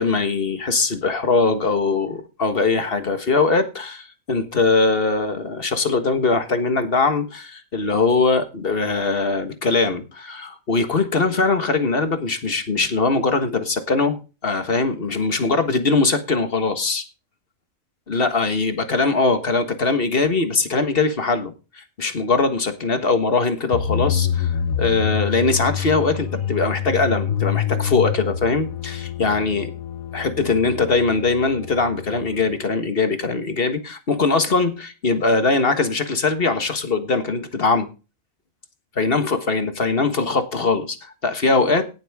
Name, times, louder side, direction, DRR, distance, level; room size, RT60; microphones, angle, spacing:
voice 1, 0.0-17.0 18.1-29.7 30.1-37.9 39.0-41.9, left 3 dB, 45° left, 1.6 m, -21 dB
sound 1, 23.7-32.6, left 9 dB, 90° left, 1.3 m, -27 dB
18.0 x 7.6 x 3.6 m
omnidirectional pair, 1.4 m